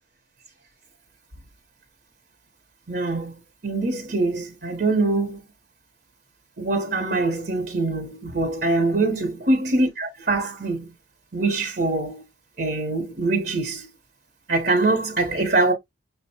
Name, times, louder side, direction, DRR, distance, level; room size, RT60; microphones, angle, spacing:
voice 1, 2.9-3.3 3.6-5.4 6.6-10.9 11.3-12.2 12.6-13.9 14.5-15.7, right 2 dB, 55° right, 1.0 m, -23 dB
6.1 x 2.1 x 2.8 m
head